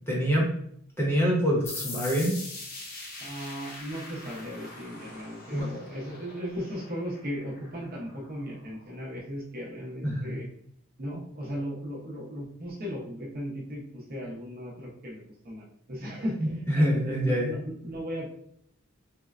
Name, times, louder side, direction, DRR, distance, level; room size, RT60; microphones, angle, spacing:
voice 1, 0.1-0.5 1.0-2.3 5.5-5.7 10.0-10.4 16.4-17.6, equal, 10° left, -4 dB, 0.8 m, -25 dB
sound 1, 1.7-9.0, left 3 dB, 50° left, 0.6 m, -43 dB
voice 2, 3.2-10.5 11.0-18.3, equal, 45° right, -2 dB, 0.8 m, -36 dB
4.3 x 2.1 x 2.4 m, 0.68 s
head